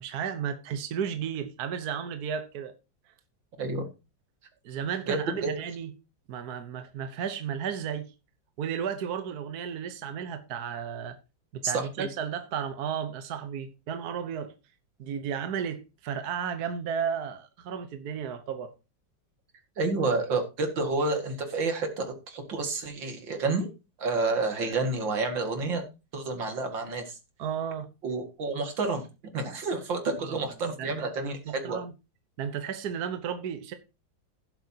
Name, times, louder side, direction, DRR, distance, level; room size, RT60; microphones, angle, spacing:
voice 1, 0.0-2.7 4.6-5.9 6.3-8.1 8.6-11.2 11.5-14.5 15.0-18.7 27.4-27.9 30.2-30.4 30.8-31.9 32.4-33.7, right 7 dB, 60° right, 1.4 m, -33 dB
voice 2, 3.6-3.9 5.1-5.5 11.6-12.1 19.8-23.7 24.0-25.8 26.1-27.2 28.0-29.0 29.3-31.8, right 3 dB, 80° right, 2.7 m, -29 dB
16.5 x 7.8 x 2.8 m
omnidirectional pair, 2.0 m